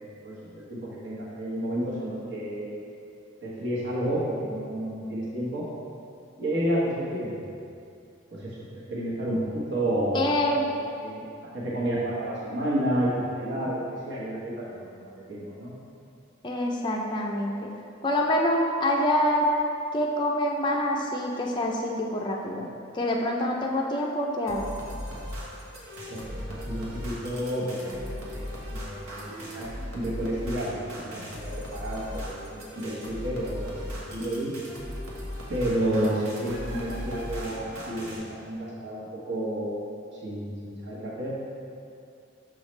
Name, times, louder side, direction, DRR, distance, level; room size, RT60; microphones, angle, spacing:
voice 1, 0.0-2.8 3.4-5.7 6.4-7.5 8.3-10.4 11.0-11.2 11.5-15.7 26.1-29.7 29.9-30.8 31.1-34.5 35.5-39.9 40.2-41.4, right 1 dB, 60° right, -7 dB, 1.2 m, -31 dB
voice 2, 10.1-10.6 16.4-17.7 18.0-19.5 19.9-22.7 22.9-24.7, left 1 dB, 20° left, -1 dB, 0.4 m, -26 dB
sound 1, 24.5-38.2, equal, 90° right, 1.1 m, -38 dB
6.3 x 4.8 x 3.2 m, 2.5 s
head